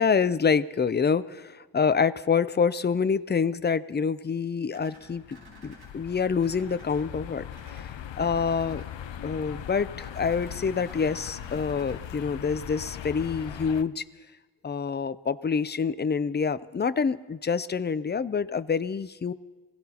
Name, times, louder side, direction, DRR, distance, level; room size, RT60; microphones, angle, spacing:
voice 1, 0.0-5.4 5.6-8.8 9.2-14.0 14.6-19.3, left 6 dB, 25° left, 15 dB, 0.4 m, -27 dB
sound 1, 4.7-5.9 6.4-7.0 7.5-7.8 8.2-8.9 10.0-12.0, right 1 dB, 85° right, 4.8 m, -52 dB
sound 2, 5.0-13.8, left 10 dB, 90° left, 0.6 m, -40 dB
26.0 x 17.5 x 2.9 m, 1.4 s
wide cardioid pair, 140°, 43 cm